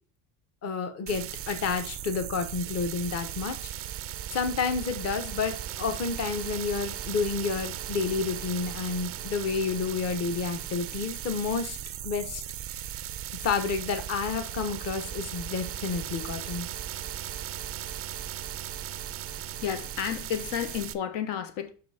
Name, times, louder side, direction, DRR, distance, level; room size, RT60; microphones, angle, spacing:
voice 1, 0.6-3.7 4.3-11.8 12.0-12.4 13.4-16.7, left 5 dB, 30° left, 0.9 m, -30 dB
sound 1, 1.1-20.9, right 11 dB, 30° right, 0.4 m, -37 dB
voice 2, 19.6-21.7, left 9 dB, 75° left, 1.2 m, -31 dB
5.4 x 5.4 x 4.1 m
cardioid pair, 145°, 47 cm